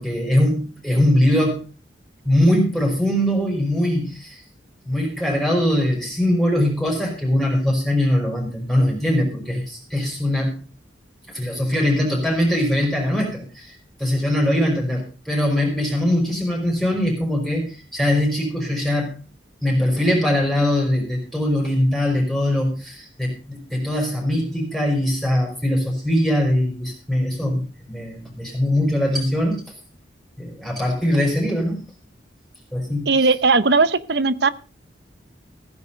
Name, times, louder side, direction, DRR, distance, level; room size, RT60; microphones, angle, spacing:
voice 1, 0.0-1.6 2.2-4.4 4.8-10.6 11.3-19.1 19.6-29.6 30.4-31.8 32.7-33.1, left 1 dB, ahead, -1 dB, 4.9 m, -21 dB
voice 2, 33.1-34.5, right 4 dB, 60° right, 16 dB, 0.8 m, -18 dB
16.0 x 9.7 x 5.1 m, 0.34 s
head